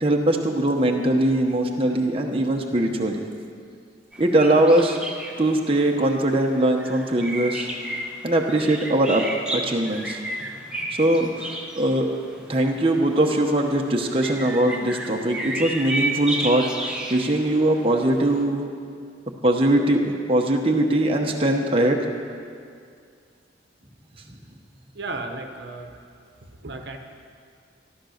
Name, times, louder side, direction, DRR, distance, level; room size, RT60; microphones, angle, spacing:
voice 1, 0.0-3.2 4.2-5.0 5.4-7.7 8.2-9.2 9.5-10.2 10.9-12.1 12.5-18.7 19.4-20.0 20.3-22.0, right 1 dB, 30° right, 1 dB, 1.0 m, -21 dB
sound 1, 4.1-18.4, right 1 dB, 5° right, 1.2 m, -33 dB
voice 2, 24.9-25.9 26.6-27.0, right 3 dB, 60° right, 4 dB, 1.1 m, -34 dB
13.0 x 12.5 x 6.6 m, 2.3 s
head